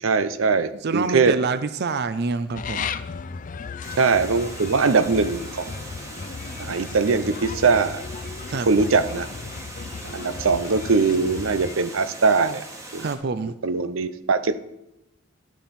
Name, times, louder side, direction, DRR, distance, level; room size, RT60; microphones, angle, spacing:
voice 1, 0.0-1.3 4.0-5.7 6.6-8.0 8.7-9.3 10.0-12.6 12.9-13.1 13.6-14.6, right 4 dB, 90° right, 12 dB, 0.7 m, -21 dB
voice 2, 0.8-2.9 8.5-8.7 13.0-13.5, right 4 dB, 55° right, 12 dB, 0.5 m, -26 dB
sound 1, 2.5-11.7, left 5 dB, 40° left, 0.4 m, -35 dB
Water, 3.8-13.2, right 2 dB, 15° right, 1.5 m, -40 dB
11.5 x 9.1 x 4.3 m, 0.90 s
head